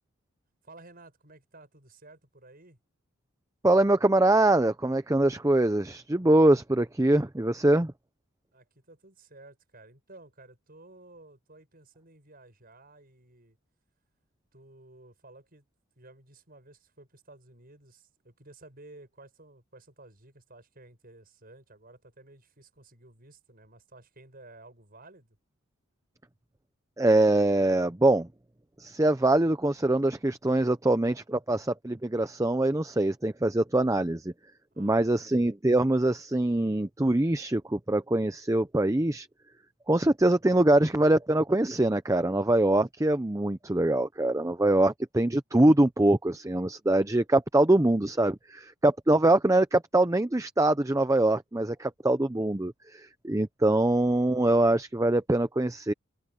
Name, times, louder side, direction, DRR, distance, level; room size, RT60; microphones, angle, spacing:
voice 1, 0.6-2.8 8.5-13.6 14.5-15.6 16.0-25.4 34.7-35.3, right 2 dB, 40° right, 6.6 m, -53 dB
voice 2, 3.6-7.9 27.0-28.3 28.8-34.3 34.8-39.3 39.9-55.9, right 1 dB, 15° right, 0.6 m, -24 dB
head